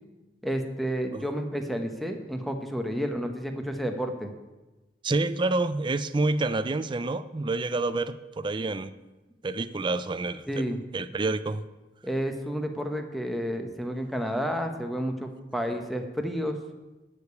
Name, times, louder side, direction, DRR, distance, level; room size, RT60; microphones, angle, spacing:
voice 1, 0.4-4.3 10.5-10.8 12.0-16.6, equal, ahead, 5 dB, 0.9 m, -30 dB
voice 2, 5.0-8.9 9.4-10.4 10.9-11.6, right 2 dB, 25° right, 14 dB, 0.4 m, -28 dB
11.5 x 5.0 x 8.3 m, 1.1 s
head